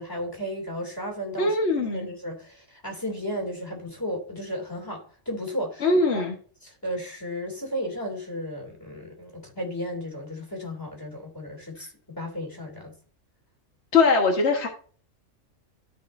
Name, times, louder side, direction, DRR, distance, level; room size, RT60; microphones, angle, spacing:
voice 1, 0.0-6.2 6.6-12.9, equal, 15° left, 3.0 m, -34 dB
voice 2, 1.4-2.1 5.8-6.3 13.9-14.7, left 3 dB, 60° left, 1.7 m, -21 dB
13.5 x 5.0 x 2.6 m
omnidirectional pair, 1.3 m